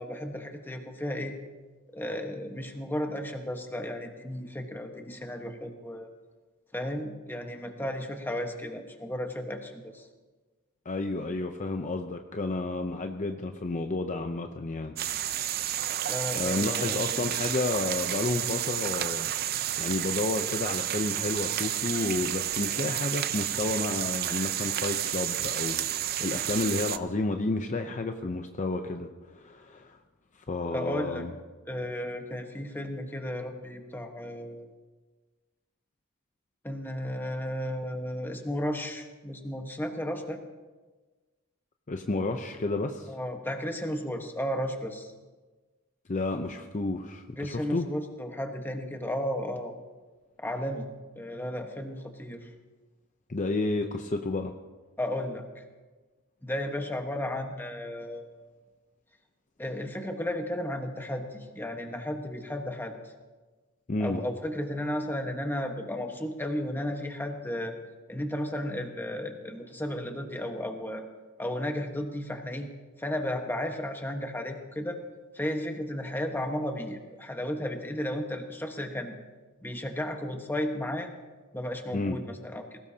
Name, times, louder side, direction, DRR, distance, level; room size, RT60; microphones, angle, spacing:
voice 1, 0.0-1.3 1.9-6.1 6.7-10.1 16.1-17.0 18.3-18.5 30.7-31.2 31.7-34.7 36.6-40.4 43.1-45.1 47.4-49.7 50.4-50.9 51.2-52.5 55.0-55.6 56.4-58.4 59.6-62.9 64.0-67.7 68.1-71.0 71.4-72.7 73.0-75.0 75.3-79.1 79.6-81.1 81.5-82.8, left 1 dB, 10° left, 4 dB, 1.3 m, -34 dB
voice 2, 10.8-15.0 16.4-19.3 19.8-30.0 30.5-31.3 41.9-43.1 46.1-47.9 53.3-54.5 63.9-64.2 81.9-82.2, left 2 dB, 35° left, 5 dB, 0.7 m, -31 dB
sound 1, 15.0-27.0, right 11 dB, 45° right, 0.5 m, -31 dB
20.5 x 17.5 x 2.8 m, 1.3 s
head